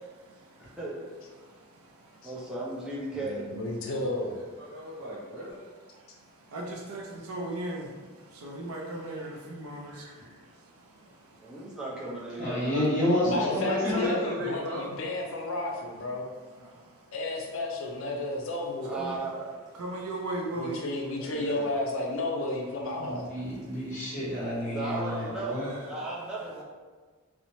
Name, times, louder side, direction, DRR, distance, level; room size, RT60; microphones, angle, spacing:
voice 1, 0.6-1.0 2.2-3.5 11.4-12.9 18.8-19.5 21.2-21.8 24.7-26.6, right 2 dB, 5° right, -6 dB, 0.5 m, -36 dB
voice 2, 3.2-4.4 13.2-16.2 17.1-19.0 20.5-23.3, left 2 dB, 65° left, 0 dB, 0.4 m, -32 dB
voice 3, 4.3-5.6 8.9-9.3 9.6-10.4 13.4-14.9 24.9-26.1, left 1 dB, 60° right, -6 dB, 0.9 m, -38 dB
voice 4, 6.5-10.1 16.6-16.7 19.0-19.2 19.8-20.8, right 1 dB, 80° right, 0 dB, 0.5 m, -36 dB
voice 5, 12.4-14.1 22.9-25.7, left 1 dB, 35° left, -7 dB, 1.0 m, -29 dB
3.0 x 2.0 x 2.6 m, 1.4 s
head